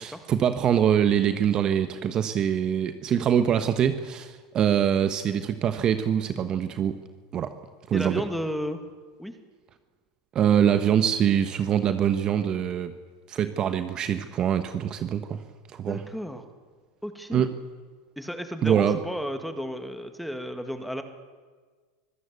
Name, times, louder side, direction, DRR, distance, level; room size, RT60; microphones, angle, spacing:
voice 1, 0.0-7.0 7.3-7.5 7.9-8.2 10.3-12.9 13.3-15.4 15.7-16.0 17.3-17.5 18.6-19.0, right 9 dB, 35° right, 10 dB, 1.2 m, -24 dB
voice 2, 7.9-8.8 9.2-9.3 15.8-16.4 17.0-17.4 18.2-21.0, equal, ahead, 8 dB, 2.2 m, -33 dB
24.5 x 15.0 x 8.3 m, 1.5 s
supercardioid pair, 115°, 2 cm